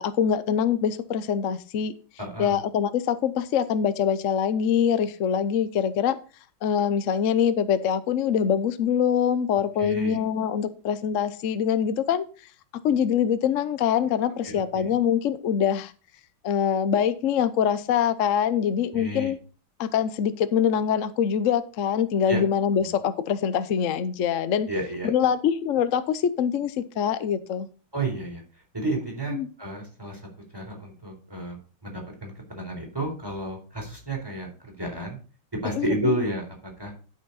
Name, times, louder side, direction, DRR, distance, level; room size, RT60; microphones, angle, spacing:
voice 1, 0.0-1.9 2.4-6.2 6.6-12.3 12.8-15.9 16.4-19.4 19.8-24.7 25.0-27.7 29.3-29.5 35.7-36.2, left 8 dB, 60° left, 13 dB, 0.8 m, -24 dB
voice 2, 2.2-2.6 9.8-10.2 14.4-14.9 18.9-19.3 22.3-22.4 22.8-22.9 24.7-25.1 27.9-28.4 28.7-30.2 30.5-31.6 31.8-35.2 35.6-36.9, right 1 dB, 10° right, 0 dB, 4.0 m, -31 dB
12.0 x 6.3 x 4.1 m, 0.37 s
omnidirectional pair, 2.3 m